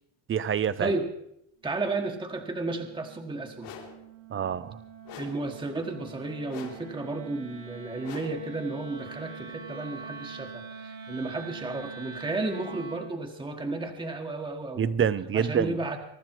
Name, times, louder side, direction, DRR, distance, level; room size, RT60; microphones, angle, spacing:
voice 1, 0.3-0.9 4.3-4.8 14.8-15.8, right 8 dB, 25° right, 17 dB, 0.6 m, -26 dB
voice 2, 1.6-3.7 5.2-14.8 15.3-16.0, right 2 dB, 10° right, 3 dB, 1.5 m, -33 dB
Wind instrument woodwind instrument, 1.6-13.1, right 5 dB, 90° right, 3.1 m, -44 dB
sound 1, 3.6-4.1 5.1-5.5 6.5-7.0 8.0-8.5, left 7 dB, 80° left, 4.7 m, -44 dB
23.5 x 12.0 x 4.5 m, 0.76 s
cardioid pair, 130°, 50 cm